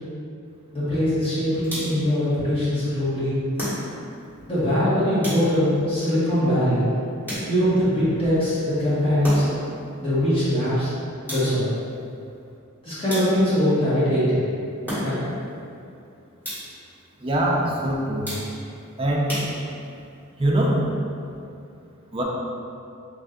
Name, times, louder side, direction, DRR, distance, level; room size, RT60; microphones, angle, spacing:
voice 1, 0.7-3.4 4.5-6.8 7.5-9.5 10.0-10.9 11.3-11.7 12.8-14.4 15.0-15.2, equal, 25° left, -11 dB, 1.2 m, -22 dB
sound 1, 1.6-2.2 3.6-4.2 5.2-5.8 7.3-7.9 9.2-9.7 11.3-11.8 13.1-13.7 14.9-15.4 16.4-16.9 18.2-18.8 19.3-20.0, equal, 10° left, 1.3 m, -33 dB
voice 2, 17.2-18.3 19.0-19.3 20.4-20.8 22.1-22.2, right 1 dB, 25° right, -3 dB, 0.4 m, -22 dB
3.2 x 2.6 x 3.6 m, 2.5 s
head